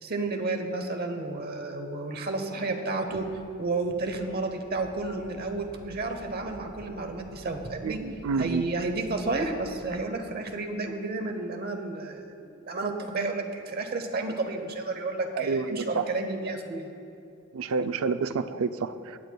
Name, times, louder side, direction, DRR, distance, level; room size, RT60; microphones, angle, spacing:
voice 1, 0.0-3.3 3.6-8.0 8.4-16.9, right 3 dB, 45° right, 5 dB, 0.9 m, -31 dB
sound 1, 3.1-9.9, right 1 dB, 25° left, 2.3 m, -50 dB
voice 2, 7.8-8.6 15.4-16.1 17.5-19.2, right 5 dB, 75° right, 11 dB, 0.4 m, -29 dB
18.5 x 9.4 x 2.3 m, 2.6 s
head